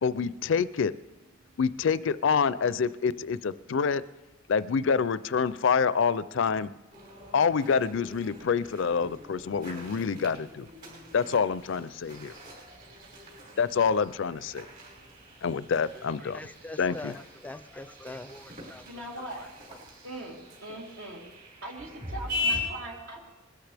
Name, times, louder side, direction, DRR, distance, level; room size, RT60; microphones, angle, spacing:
voice 1, 0.0-0.9 1.6-4.0 4.5-6.7 7.3-10.7 11.1-12.3 13.6-14.7 15.4-16.4 16.8-17.1, left 6 dB, 65° left, 17 dB, 0.4 m, -27 dB
sound 1, 6.9-22.6, left 2 dB, 45° right, 5.4 m, -41 dB
voice 2, 15.9-18.9 19.2-19.5, left 2 dB, 10° left, 12 dB, 0.4 m, -43 dB
voice 3, 18.9-19.5 20.0-21.2 21.6-23.2, right 1 dB, 75° right, -2 dB, 3.3 m, -40 dB
20.5 x 14.0 x 3.4 m, 1.1 s
head